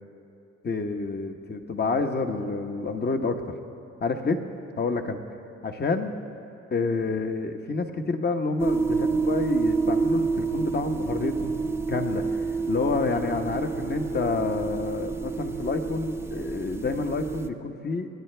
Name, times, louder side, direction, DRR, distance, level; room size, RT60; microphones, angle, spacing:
voice 1, 0.6-3.5 4.0-4.4 4.8-5.2 5.6-6.1 6.7-18.1, left 4 dB, 35° left, 6 dB, 1.1 m, -28 dB
sound 1, 8.6-17.5, right 4 dB, 10° right, 0.6 m, -28 dB
27.5 x 10.5 x 3.4 m, 2.9 s
cardioid pair, 90°, 30 cm